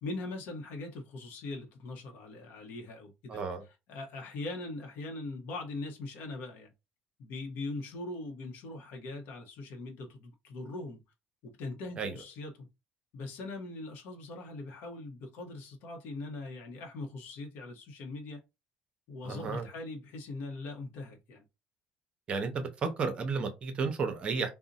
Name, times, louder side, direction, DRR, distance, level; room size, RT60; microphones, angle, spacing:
voice 1, 0.0-3.4 3.9-6.7 7.2-11.0 11.4-12.7 13.1-18.4 19.1-21.4, left 2 dB, 65° left, 0.8 m, -41 dB
voice 2, 3.3-3.6 12.0-12.2 19.2-19.7 22.3-24.5, right 4 dB, 30° right, 0.7 m, -33 dB
2.5 x 2.1 x 3.9 m
cardioid pair, 160°, 3 cm